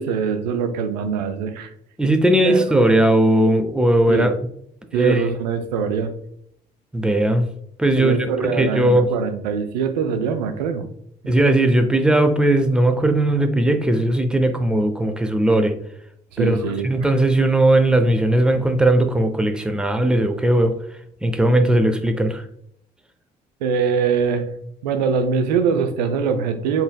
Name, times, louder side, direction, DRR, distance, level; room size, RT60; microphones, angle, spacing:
voice 1, 0.0-1.7 2.4-2.6 4.1-4.3 4.9-6.1 8.0-10.8 16.3-16.9 23.6-24.5 24.8-26.8, right 6 dB, 85° right, 8 dB, 0.4 m, -23 dB
voice 2, 2.0-4.3 4.9-5.2 6.9-7.5 7.8-8.2 8.6-9.1 11.3-15.8 16.4-16.6 16.8-20.8 21.2-22.4, right 1 dB, 5° right, 7 dB, 0.6 m, -18 dB
4.0 x 4.0 x 2.2 m, 0.68 s
hypercardioid pair, 50°, 21 cm